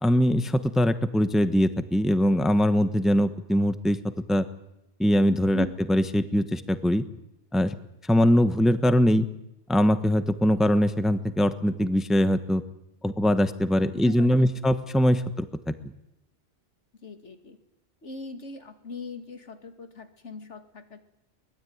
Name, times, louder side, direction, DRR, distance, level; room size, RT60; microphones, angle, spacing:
voice 1, 0.0-4.0 4.3-4.4 5.0-7.0 7.5-7.7 8.1-9.3 9.7-12.6 13.0-15.7, equal, ahead, 10 dB, 1.0 m, -22 dB
voice 2, 13.9-14.3 17.0-17.6 18.0-21.0, left 3 dB, 75° left, 7 dB, 2.5 m, -40 dB
23.5 x 19.5 x 9.5 m, 0.86 s
omnidirectional pair, 1.2 m